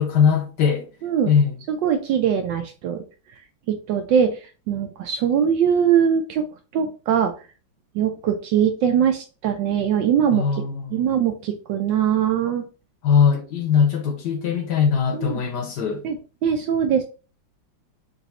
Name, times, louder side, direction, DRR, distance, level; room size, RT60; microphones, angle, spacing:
voice 1, 0.0-0.9 1.2-1.6 10.3-11.1 13.0-16.0, left 7 dB, 65° left, 1.2 m, -21 dB
voice 2, 1.0-1.3 1.7-3.0 3.7-4.4 4.7-6.4 6.7-7.3 7.9-10.4 10.9-12.6 15.1-15.4 16.0-16.2 16.4-17.0, right 8 dB, 75° right, 1.1 m, -21 dB
3.9 x 2.6 x 4.1 m
omnidirectional pair, 2.2 m